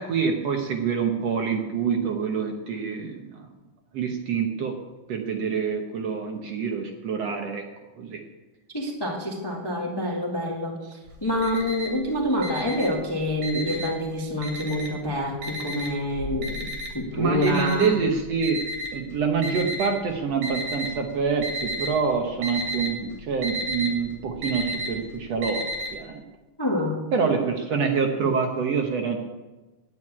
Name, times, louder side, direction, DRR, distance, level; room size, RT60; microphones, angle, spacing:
voice 1, 0.0-3.3 3.9-4.8 5.1-7.6 8.0-8.2 17.1-26.2 27.1-29.2, right 5 dB, 60° right, 3 dB, 1.9 m, -26 dB
voice 2, 8.7-17.9 26.6-27.1, left 1 dB, 15° left, -1 dB, 0.9 m, -27 dB
Alarm, 11.1-12.0 12.4-14.0 14.4-15.1 15.4-19.9 20.4-21.0 21.3-21.9 22.2-25.9, equal, 85° right, 4.5 m, -32 dB
10.5 x 9.2 x 8.6 m, 1.1 s
omnidirectional pair, 3.8 m